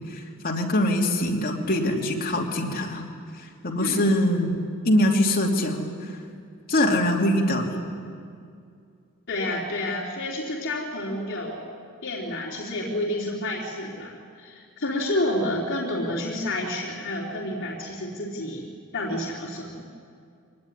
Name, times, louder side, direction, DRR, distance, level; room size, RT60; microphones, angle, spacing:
voice 1, 0.1-3.0 3.6-6.1 6.7-7.8, left 1 dB, 40° left, -1 dB, 3.0 m, -23 dB
voice 2, 9.3-11.7 12.0-18.7 18.9-19.8, left 1 dB, 55° left, -6 dB, 3.5 m, -29 dB
24.0 x 19.5 x 10.0 m, 2.3 s
head